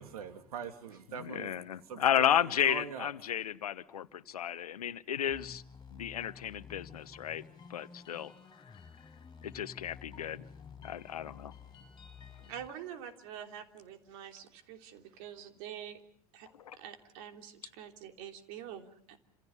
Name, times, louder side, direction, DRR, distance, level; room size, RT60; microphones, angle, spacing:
voice 1, 0.0-1.5 1.8-3.1, right 7 dB, 75° right, 8 dB, 2.4 m, -42 dB
voice 2, 1.2-5.6 5.9-7.4 7.7-8.3 9.4-10.4 10.8-11.5 16.7-16.8, left 10 dB, 80° left, 15 dB, 1.1 m, -33 dB
sound 1, 5.3-12.7, left 6 dB, 20° left, 6.1 m, -52 dB
voice 3, 12.5-16.0 16.3-19.2, right 9 dB, 60° right, 6 dB, 3.2 m, -46 dB
28.5 x 27.5 x 5.5 m, 0.63 s
hypercardioid pair, 80°, 19 cm